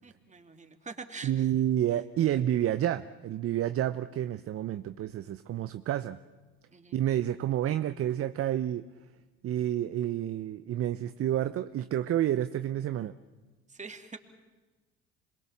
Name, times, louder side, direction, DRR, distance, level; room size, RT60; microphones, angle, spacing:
voice 1, 0.0-1.5 6.7-7.0 13.7-14.2, right 4 dB, 25° right, 5 dB, 2.8 m, -45 dB
voice 2, 1.2-6.2 6.9-8.8 9.4-13.1, right 11 dB, 45° right, 12 dB, 0.8 m, -29 dB
27.0 x 21.5 x 7.3 m, 1.2 s
hypercardioid pair, 60°, 31 cm